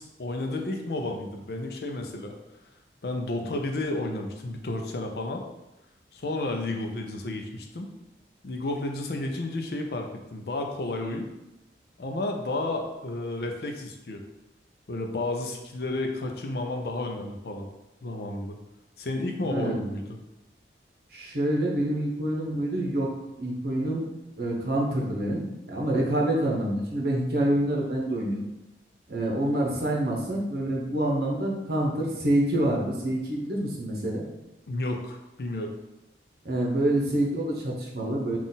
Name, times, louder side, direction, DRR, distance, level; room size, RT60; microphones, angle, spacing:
voice 1, 0.0-2.3 3.0-5.4 6.1-7.9 8.4-11.3 12.0-14.2 14.9-17.7 18.0-18.6 19.0-20.0 34.7-35.7, left 2 dB, 60° left, 3 dB, 0.5 m, -32 dB
voice 2, 19.4-19.8 21.1-23.1 23.4-24.0 24.4-28.4 29.1-34.2 36.4-38.4, right 1 dB, 60° right, -2 dB, 0.9 m, -27 dB
3.8 x 2.4 x 3.9 m, 0.94 s
head